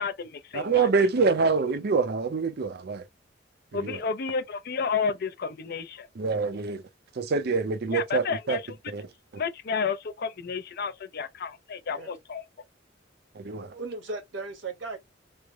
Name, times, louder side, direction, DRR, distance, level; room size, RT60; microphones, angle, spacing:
voice 1, 0.0-0.9 3.7-6.1 7.9-8.7 9.3-12.4, left 5 dB, 55° left, 0.5 m, -31 dB
voice 2, 0.5-3.0 3.7-4.0 6.2-6.8 7.2-8.6 8.9-9.0 13.4-13.7, right 4 dB, 55° right, 0.5 m, -26 dB
voice 3, 13.5-15.0, right 3 dB, 75° right, 1.2 m, -37 dB
3.2 x 2.1 x 3.4 m
head